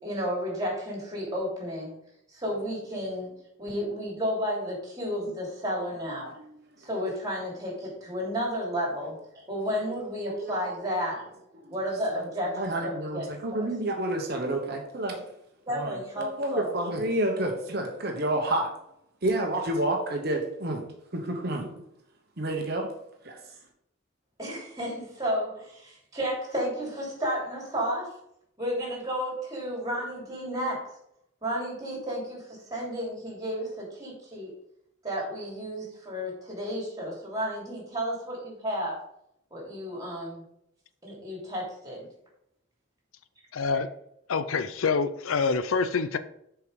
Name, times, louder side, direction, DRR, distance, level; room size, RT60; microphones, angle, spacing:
voice 1, 0.0-1.9 2.3-3.3 3.6-6.3 6.8-11.3 11.7-13.3 15.7-16.7 24.4-28.2 28.6-30.9 31.4-34.5 35.0-39.0 39.5-40.4 41.0-42.1, equal, 20° right, -3 dB, 3.1 m, -32 dB
voice 2, 10.2-10.8 11.6-15.2 15.7-18.7 19.2-20.8 21.1-21.7 22.4-22.9 23.2-23.4, right 1 dB, 50° right, 3 dB, 1.1 m, -30 dB
voice 3, 43.5-43.9 44.3-46.2, left 5 dB, 90° left, 13 dB, 0.5 m, -26 dB
6.8 x 4.7 x 5.1 m, 0.76 s
head